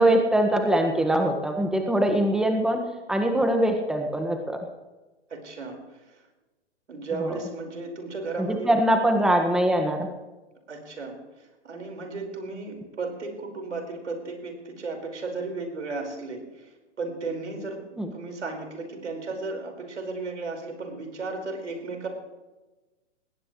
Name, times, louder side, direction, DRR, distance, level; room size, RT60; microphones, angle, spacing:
voice 1, 0.0-2.8 3.1-4.6 7.2-7.3 8.4-10.1 18.0-18.1, right 1 dB, ahead, 4 dB, 1.6 m, -22 dB
voice 2, 5.3-6.2 6.9-8.9 10.7-16.7 17.0-22.1, right 3 dB, 80° right, 3 dB, 5.0 m, -35 dB
19.5 x 18.5 x 3.2 m, 1.1 s
hypercardioid pair, 115°, 35 cm